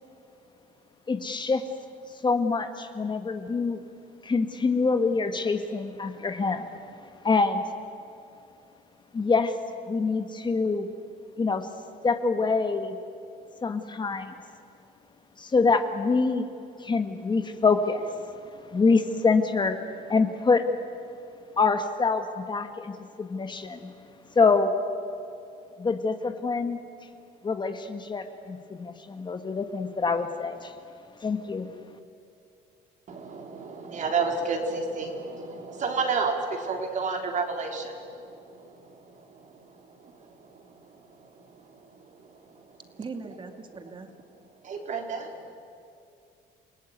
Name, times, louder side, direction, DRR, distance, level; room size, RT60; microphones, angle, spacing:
voice 1, 1.1-1.6 2.2-3.8 4.2-6.7 7.2-7.6 9.1-9.5 9.9-10.9 11.4-11.7 12.0-13.0 13.6-14.3 15.4-16.5 16.8-19.8 20.1-20.7 21.6-23.9 24.3-24.7 25.8-26.8 27.4-30.7 31.2-31.7, left 4 dB, 25° left, 8 dB, 1.5 m, -25 dB
voice 2, 33.1-42.8 44.6-45.5, right 4 dB, 45° right, 3 dB, 3.8 m, -32 dB
voice 3, 43.0-44.1, right 4 dB, 30° right, 7 dB, 2.3 m, -39 dB
29.0 x 18.0 x 9.5 m, 2.5 s
cardioid pair, 110°, 17 cm